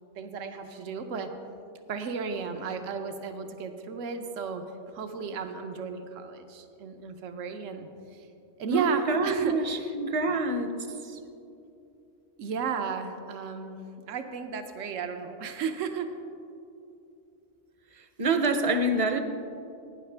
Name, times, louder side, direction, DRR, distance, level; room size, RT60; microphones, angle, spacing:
voice 1, 0.2-1.3 1.9-4.6 4.9-8.3 8.6-9.9 10.3-10.4 12.4-13.8 14.1-16.1, right 5 dB, 85° right, 6 dB, 1.1 m, -34 dB
voice 2, 8.7-10.8 18.2-19.2, right 2 dB, 40° right, 8 dB, 0.5 m, -26 dB
17.0 x 9.4 x 3.3 m, 2.8 s
omnidirectional pair, 1.3 m